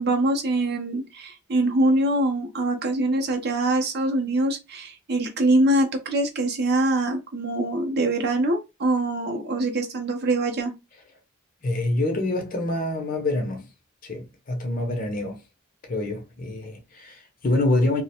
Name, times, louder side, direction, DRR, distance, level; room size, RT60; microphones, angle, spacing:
voice 1, 0.0-10.7, right 1 dB, 50° right, 0.5 m, -23 dB
voice 2, 11.6-13.7 14.0-15.4 15.9-18.0, left 2 dB, 40° left, 0.5 m, -26 dB
2.4 x 2.1 x 2.7 m
head